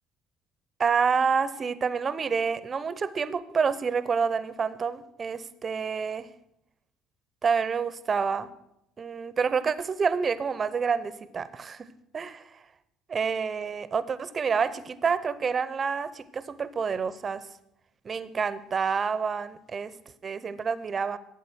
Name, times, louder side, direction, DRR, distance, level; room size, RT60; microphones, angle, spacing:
voice 1, 0.8-6.3 7.4-8.5 9.0-11.9 12.1-12.5 13.1-17.4 18.0-19.9 20.2-21.2, right 6 dB, 40° right, 16 dB, 0.8 m, -28 dB
12.0 x 8.3 x 6.3 m, 0.81 s
hypercardioid pair, 65°, 0 cm